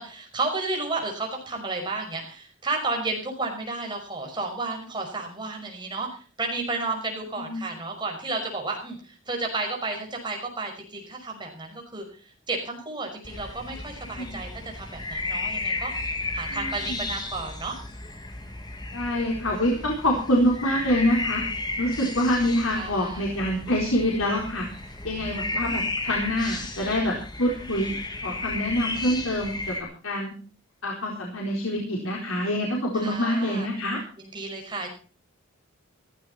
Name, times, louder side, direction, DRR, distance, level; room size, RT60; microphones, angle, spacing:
voice 1, 0.0-12.0 12.5-14.5 14.7-15.9 16.3-17.8 22.7-23.3 25.1-25.7 33.0-33.7 34.2-34.9, right 3 dB, 20° right, 1 dB, 5.6 m, -32 dB
voice 2, 7.4-7.7 14.2-14.3 16.5-17.0 18.9-21.4 21.8-24.7 25.0-30.3 30.8-34.0, left 1 dB, 85° left, -1 dB, 4.2 m, -26 dB
sound 1, 13.2-29.8, left 2 dB, 20° left, 2.3 m, -34 dB
15.5 x 15.5 x 4.3 m, 0.40 s
head